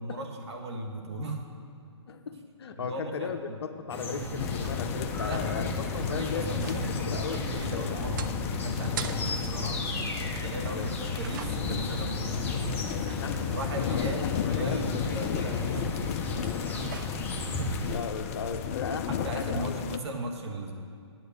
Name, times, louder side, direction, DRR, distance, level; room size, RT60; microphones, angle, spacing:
voice 1, 0.0-1.5 2.7-3.6 5.2-12.9 13.5-16.4 19.1-20.8, right 1 dB, 65° right, 2 dB, 1.6 m, -37 dB
voice 2, 2.1-6.8 7.0-8.0 8.9-9.1 10.7-10.9 13.2-13.4 13.9-15.0 17.5-19.1 19.4-19.8, left 6 dB, 60° left, 8 dB, 0.8 m, -37 dB
sound 1, 3.9-18.0, left 1 dB, 10° left, 0.9 m, -36 dB
sound 2, 4.2-19.0, right 7 dB, 45° right, 0.6 m, -42 dB
sound 3, 4.4-20.0, left 9 dB, 30° left, 0.4 m, -33 dB
9.3 x 8.1 x 6.6 m, 2.3 s
figure-of-eight pair, 130°, 15 cm